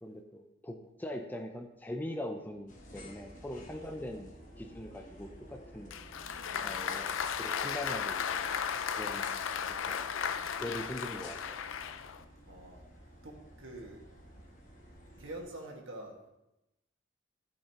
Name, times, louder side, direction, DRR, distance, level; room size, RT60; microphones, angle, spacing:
voice 1, 0.0-5.9 6.6-8.6 9.0-9.4 9.7-10.1 10.6-11.7, left 1 dB, 10° left, 4 dB, 0.5 m, -42 dB
sound 1, 2.7-15.4, equal, 40° left, 1.3 m, -53 dB
Applause, 5.9-12.2, left 7 dB, 75° left, 0.4 m, -35 dB
voice 2, 12.5-12.8 13.2-14.0 15.2-16.3, right 1 dB, 75° right, 0 dB, 1.6 m, -45 dB
13.5 x 5.6 x 2.9 m, 0.93 s
head